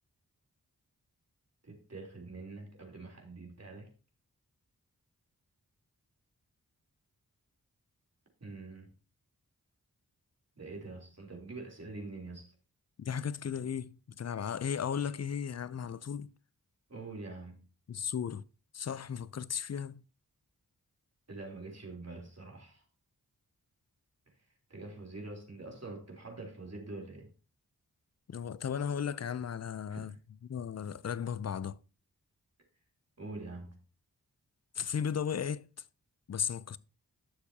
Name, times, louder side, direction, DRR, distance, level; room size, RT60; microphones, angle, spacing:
voice 1, 1.6-3.9 8.4-8.9 10.6-12.5 16.9-17.5 21.3-22.8 24.4-24.5 24.7-27.3 29.9-30.2 33.2-33.8, right 3 dB, 45° right, 3.5 m, -45 dB
voice 2, 13.0-16.3 17.9-18.4 18.7-20.0 28.3-30.1 30.4-31.8 34.8-35.7 36.3-36.8, left 7 dB, 45° left, 0.5 m, -35 dB
11.5 x 6.9 x 2.8 m
cardioid pair, 50°, 35 cm